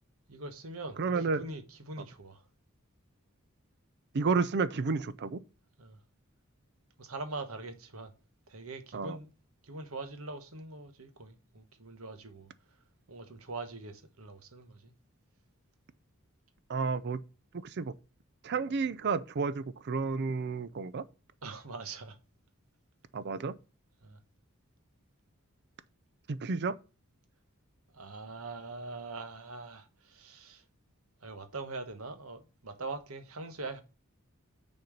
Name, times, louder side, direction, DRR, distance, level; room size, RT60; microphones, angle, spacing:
voice 1, 0.3-1.0 1.4-2.4 5.8-6.0 7.0-8.1 8.5-9.3 9.6-12.5 13.1-14.9 21.4-22.2 24.0-24.2 27.9-30.6 31.2-33.8, right 3 dB, 85° right, 1.2 m, -42 dB
voice 2, 1.0-1.4 4.1-5.4 8.9-9.2 16.7-17.2 17.6-17.9 18.4-21.0 23.1-23.5 26.3-26.7, right 4 dB, 55° right, 0.5 m, -31 dB
6.7 x 4.3 x 6.4 m
head